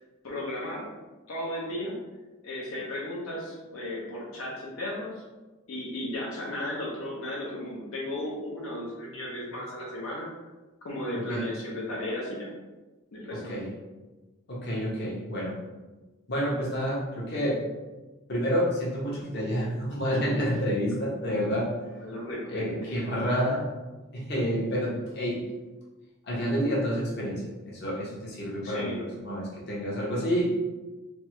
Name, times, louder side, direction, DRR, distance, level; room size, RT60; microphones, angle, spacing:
voice 1, 0.2-0.9 1.3-2.0 2.4-5.2 5.7-10.3 10.8-12.5 13.1-13.5 21.8-23.0 28.6-29.0, left 1 dB, 85° left, -4 dB, 0.7 m, -35 dB
voice 2, 13.3-13.7 14.5-15.6 16.3-17.6 18.3-21.7 22.5-23.7 24.1-25.5 26.2-30.5, equal, 50° left, -5 dB, 0.8 m, -29 dB
3.4 x 2.0 x 3.0 m, 1.2 s
head